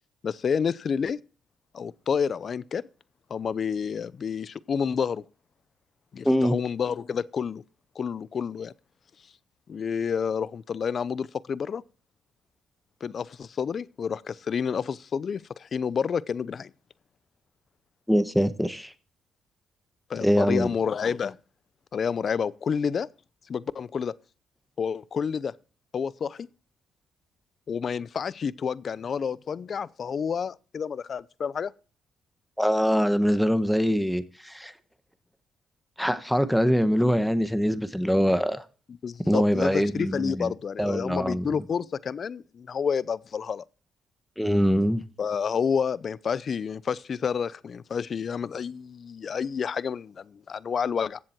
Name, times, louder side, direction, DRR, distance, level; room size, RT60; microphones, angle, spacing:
voice 1, 0.2-1.2 1.7-2.8 3.3-5.2 6.1-7.6 8.0-8.7 9.7-11.8 13.0-16.7 20.1-21.4 21.9-23.1 23.5-24.1 24.8-25.5 25.9-26.5 27.7-31.7 39.0-43.6 45.2-51.2, left 6 dB, 50° left, 0.6 m, -29 dB
voice 2, 6.2-6.6 18.1-18.9 20.2-20.7 32.6-34.7 36.0-38.6 39.3-40.5 40.8-41.6 44.4-45.0, equal, ahead, 1.2 m, -23 dB
15.0 x 7.6 x 4.5 m
cardioid pair, 90°, 0 cm